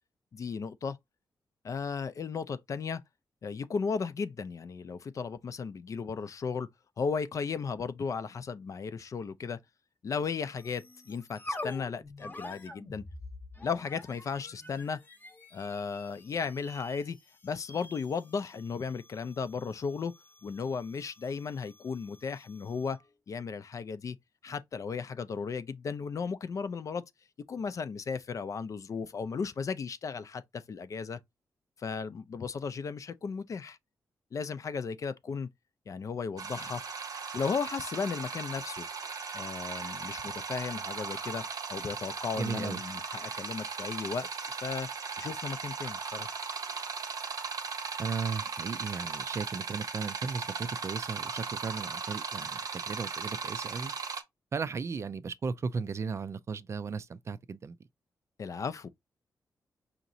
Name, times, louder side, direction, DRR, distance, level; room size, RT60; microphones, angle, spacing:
voice 1, 0.3-1.0 1.6-3.0 3.4-6.7 7.0-9.6 10.0-13.0 13.6-15.0 15.5-17.2 17.4-20.1 20.4-23.0 23.3-24.2 24.4-27.0 27.5-31.2 31.8-33.8 34.3-35.5 35.9-36.8 37.3-38.9 39.3-41.4 41.7-44.9 45.2-46.4 58.4-58.9, left 5 dB, 50° left, 0.4 m, -35 dB
sound 1, 10.6-23.1, left 2 dB, 25° left, 0.8 m, -47 dB
sound 2, 36.4-54.2, right 5 dB, 60° right, 0.8 m, -37 dB
voice 2, 42.4-42.8 48.0-53.9 54.5-57.8, right 5 dB, 40° right, 0.3 m, -36 dB
5.0 x 2.9 x 2.6 m
wide cardioid pair, 105°, 7 cm